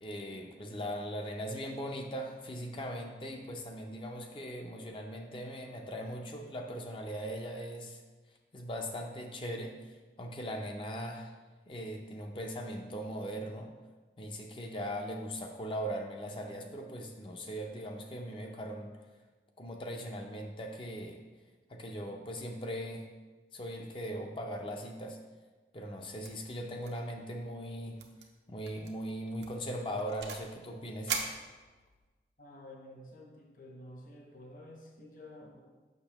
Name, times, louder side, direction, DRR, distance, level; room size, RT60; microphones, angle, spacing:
voice 1, 0.0-8.0 8.5-11.3 11.7-13.7 14.2-19.0 19.6-21.2 21.7-23.1 23.5-25.2 25.7-28.0 28.5-31.2, equal, 30° left, 2 dB, 0.5 m, -39 dB
sound 1, 26.2-26.5 26.8-27.1 27.4-27.5 28.0-28.3 28.7-28.9 29.4-30.5 31.1-32.1, right 5 dB, 80° right, 0.7 m, -39 dB
voice 2, 32.4-35.6, left 1 dB, 50° left, 1 dB, 0.9 m, -51 dB
6.6 x 5.9 x 2.9 m, 1.3 s
head